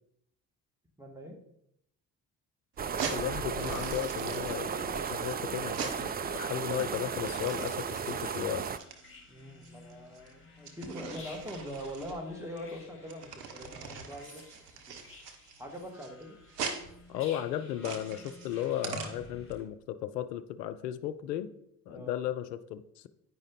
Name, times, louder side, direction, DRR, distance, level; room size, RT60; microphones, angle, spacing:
voice 1, 1.0-1.4 9.3-14.4 14.7-14.8 15.6-16.4 21.9-22.2, equal, 5° right, 2 dB, 2.4 m, -42 dB
sound 1, 2.8-8.8, right 6 dB, 20° right, 0.4 m, -35 dB
sound 2, 2.9-19.5, right 6 dB, 85° right, 0.9 m, -42 dB
voice 2, 3.1-8.7 17.1-21.5 21.9-23.1, left 11 dB, 85° left, 10 dB, 0.6 m, -35 dB
sound 3, 5.6-19.6, left 3 dB, 25° left, 2.4 m, -55 dB
9.5 x 5.0 x 4.1 m, 0.75 s
hypercardioid pair, 45°, 47 cm